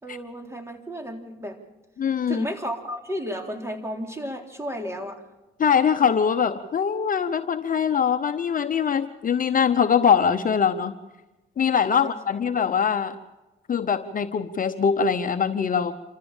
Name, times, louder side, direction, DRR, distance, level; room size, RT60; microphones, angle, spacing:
voice 1, 0.0-1.6 2.3-5.2 12.0-12.1, equal, 15° right, 4 dB, 3.7 m, -33 dB
voice 2, 2.0-2.4 5.6-10.9 11.6-13.2 13.7-15.9, left 7 dB, 45° left, 8 dB, 1.0 m, -22 dB
27.5 x 14.5 x 7.3 m, 1.1 s
cardioid pair, 90°, 20 cm